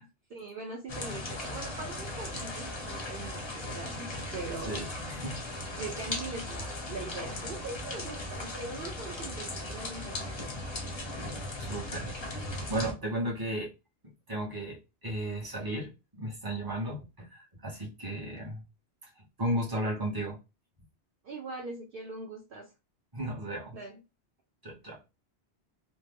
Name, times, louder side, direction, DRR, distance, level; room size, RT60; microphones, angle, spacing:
voice 1, 0.0-4.8 5.8-10.4 21.2-22.7 23.7-24.0, right 3 dB, 60° right, 0.7 m, -41 dB
sound 1, 0.9-12.9, left 2 dB, 35° left, 0.5 m, -38 dB
voice 2, 4.6-5.6 11.6-13.7 14.3-18.6 19.2-20.4 23.1-23.7 24.6-25.0, right 1 dB, 20° right, 0.9 m, -35 dB
2.6 x 2.0 x 3.3 m
omnidirectional pair, 1.1 m